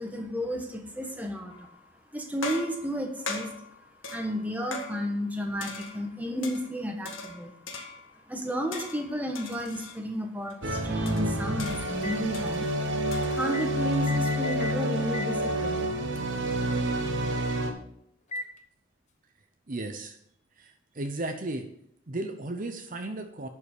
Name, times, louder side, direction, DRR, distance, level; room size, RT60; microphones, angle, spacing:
voice 1, 0.0-1.7 2.1-3.5 4.1-7.5 8.3-12.7 13.3-15.8, equal, 10° right, 3 dB, 1.3 m, -32 dB
sound 1, 1.5-1.9 2.4-5.3 5.6-6.7 7.0-8.2 8.7-10.0 10.5-10.6 11.0-13.9, left 3 dB, 75° left, 1.8 m, -40 dB
sound 2, 10.6-17.7, right 1 dB, 70° right, 1.5 m, -28 dB
sound 3, 12.0-12.2 13.5-13.7 14.1-14.8 15.1-15.3 16.2-16.3 18.3-18.6, left 1 dB, 35° left, 0.9 m, -37 dB
voice 2, 19.7-20.2 20.6-21.7 22.1-23.5, right 2 dB, 40° right, 5 dB, 0.8 m, -35 dB
11.0 x 5.7 x 6.6 m, 0.72 s
head